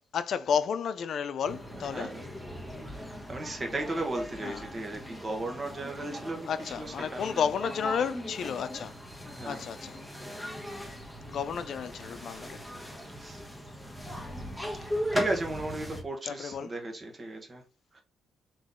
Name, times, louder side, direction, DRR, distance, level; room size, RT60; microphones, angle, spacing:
voice 1, 0.1-2.2 4.4-4.6 6.4-8.9 9.4-10.0 11.2-12.6 16.2-16.7, left 7 dB, 60° left, 0.5 m, -32 dB
sound 1, 1.4-16.0, equal, ahead, 1.2 m, -39 dB
voice 2, 1.9-2.2 2.8-6.5 6.8-6.9 7.1-7.4 9.2-9.7 10.6-10.7 13.2-13.4 14.8-14.9 15.1-17.6 17.9-18.0, right 2 dB, 30° right, 1.3 m, -36 dB
3.9 x 3.0 x 3.7 m
cardioid pair, 90°, 0 cm